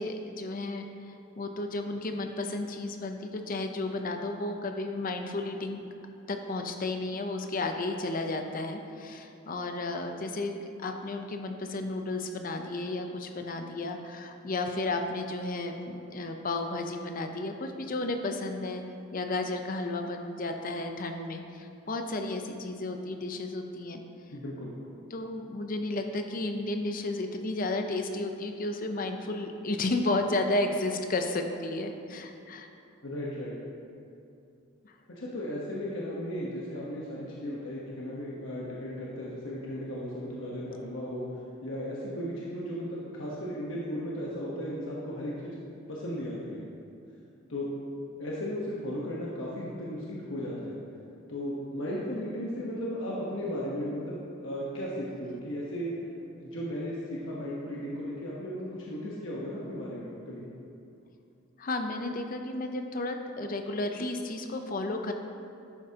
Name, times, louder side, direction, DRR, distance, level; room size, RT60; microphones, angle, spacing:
voice 1, 0.0-5.8 6.3-18.8 19.1-24.0 25.1-32.7 34.8-34.9 61.6-65.1, left 2 dB, 45° left, 5 dB, 0.7 m, -33 dB
voice 2, 24.3-24.7 33.0-33.5 35.1-45.5 45.9-46.6 47.5-47.7 48.2-50.8 51.3-55.9 56.4-60.5, equal, 70° left, -5 dB, 1.2 m, -35 dB
11.0 x 8.5 x 2.9 m, 2.6 s
head